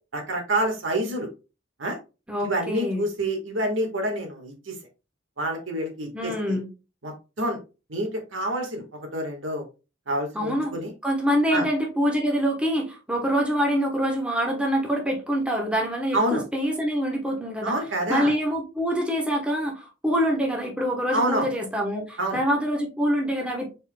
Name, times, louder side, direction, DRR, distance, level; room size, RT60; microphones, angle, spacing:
voice 1, 0.1-1.3 1.8-2.0 2.4-4.8 5.4-6.6 7.0-7.6 7.9-8.8 9.1-9.6 10.1-10.9 11.5-11.6 16.1-16.4 17.6-18.3 21.1-21.5 22.2-22.4, right 1 dB, 75° right, 3 dB, 1.5 m, -27 dB
voice 2, 2.3-3.1 6.1-6.7 10.3-10.7 11.0-17.8 18.1-23.7, equal, 5° right, 0 dB, 1.0 m, -25 dB
5.6 x 4.2 x 2.2 m, 0.30 s
head